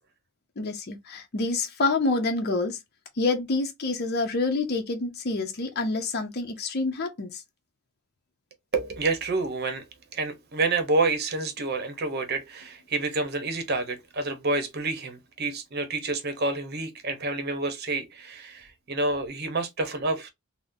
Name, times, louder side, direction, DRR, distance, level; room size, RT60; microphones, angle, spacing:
voice 1, 0.6-2.8 3.2-7.4, left 3 dB, 50° left, 0.6 m, -27 dB
voice 2, 8.7-9.8 10.1-20.3, right 3 dB, 50° right, 0.8 m, -28 dB
3.6 x 2.1 x 2.6 m
head